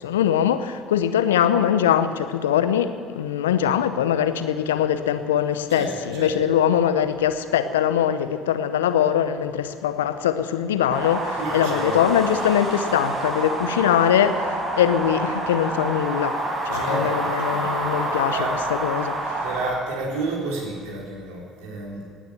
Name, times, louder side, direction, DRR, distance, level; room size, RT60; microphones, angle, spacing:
voice 1, 0.0-16.4 16.6-18.4 18.8-19.2, left 9 dB, 80° left, 0.7 m, -22 dB
voice 2, 5.7-6.4 11.4-12.5 16.7-17.8 18.3-18.6 19.4-22.1, right 2 dB, 70° right, 3.9 m, -31 dB
sound 1, 10.9-19.7, right 2 dB, 35° right, 4.8 m, -27 dB
18.5 x 9.9 x 7.2 m
figure-of-eight pair, 55°, 0 cm